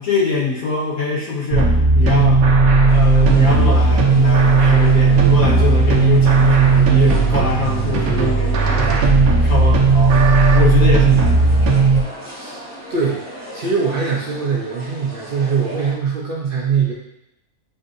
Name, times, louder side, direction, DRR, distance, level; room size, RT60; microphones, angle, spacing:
voice 1, 0.0-2.5 2.9-9.0 9.4-10.2 10.5-11.3, left 3 dB, 85° left, -6 dB, 1.7 m, -23 dB
sound 1, 1.5-12.0, right 4 dB, 80° right, 1.1 m, -14 dB
sound 2, 2.9-15.9, equal, 10° right, 1.5 m, -35 dB
voice 2, 12.3-12.6 12.9-16.9, right 5 dB, 50° right, -4 dB, 0.7 m, -22 dB
6.4 x 2.6 x 2.6 m, 0.84 s
omnidirectional pair, 1.5 m